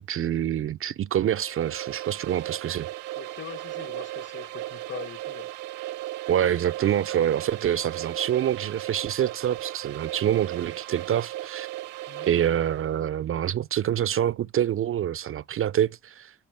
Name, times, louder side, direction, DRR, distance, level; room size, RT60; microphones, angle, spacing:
voice 1, 0.0-2.9 6.3-11.7 12.2-16.3, right 10 dB, 45° right, 0.5 m, -26 dB
sound 1, 1.2-12.9, right 16 dB, 90° right, 0.9 m, -36 dB
voice 2, 3.2-5.5 12.1-12.3, left 9 dB, 40° left, 1.1 m, -42 dB
10.0 x 3.4 x 3.4 m
supercardioid pair, 60°, 29 cm